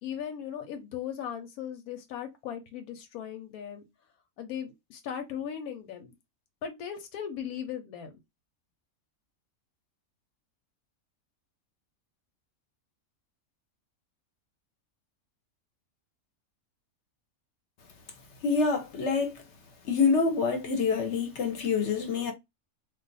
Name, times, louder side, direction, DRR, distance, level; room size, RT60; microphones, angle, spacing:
voice 1, 0.0-3.8 4.4-6.1 6.6-8.1, left 9 dB, 85° left, 1.1 m, -38 dB
voice 2, 18.4-19.4 19.9-22.3, left 5 dB, 60° left, 0.9 m, -26 dB
2.4 x 2.4 x 3.9 m
omnidirectional pair, 1.5 m